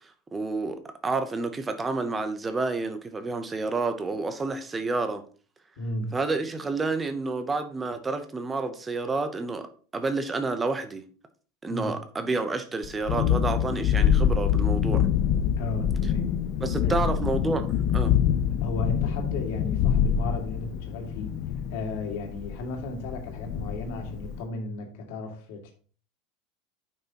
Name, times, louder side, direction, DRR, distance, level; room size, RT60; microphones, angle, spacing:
voice 1, 0.3-5.2 6.1-11.0 11.6-15.1 16.6-17.7 17.9-18.1, right 3 dB, 10° right, 0.6 m, -29 dB
voice 2, 5.8-6.2 11.7-12.0 15.6-16.3 16.8-17.0 18.6-21.4 21.7-25.7, left 1 dB, 65° left, 2.1 m, -35 dB
Thunderstorm, 12.8-24.4, left 9 dB, 40° left, 0.4 m, -25 dB
9.2 x 5.7 x 2.9 m
supercardioid pair, 175°, 0 cm